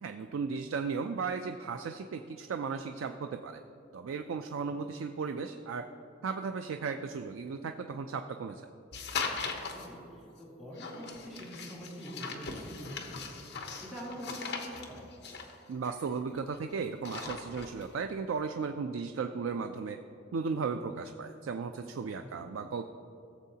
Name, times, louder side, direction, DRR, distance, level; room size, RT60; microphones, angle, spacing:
voice 1, 0.0-3.6 3.9-5.8 6.2-8.6 15.7-20.0 20.3-22.9, right 5 dB, 80° right, 7 dB, 0.4 m, -35 dB
sound 1, 8.9-9.9 10.8-16.6 16.9-17.9, left 5 dB, 60° left, 1.0 m, -39 dB
voice 2, 9.7-15.0 22.2-22.5, equal, ahead, -7 dB, 2.2 m, -45 dB
16.5 x 7.2 x 2.8 m, 2.7 s
head